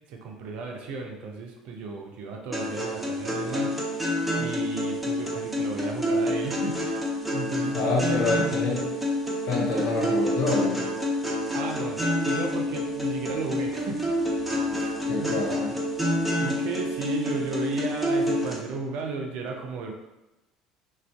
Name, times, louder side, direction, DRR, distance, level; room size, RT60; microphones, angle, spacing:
voice 1, 0.1-4.0 4.4-8.6 9.7-9.9 11.5-14.1 14.7-15.3 16.4-19.9, right 4 dB, 60° right, 2 dB, 0.4 m, -34 dB
sound 1, 2.5-18.5, left 1 dB, 5° right, 0.7 m, -28 dB
voice 2, 7.7-8.9 9.4-10.8 15.1-15.7, left 3 dB, 60° left, -1 dB, 0.6 m, -27 dB
2.4 x 2.2 x 2.2 m, 0.99 s
figure-of-eight pair, 60°, 2 cm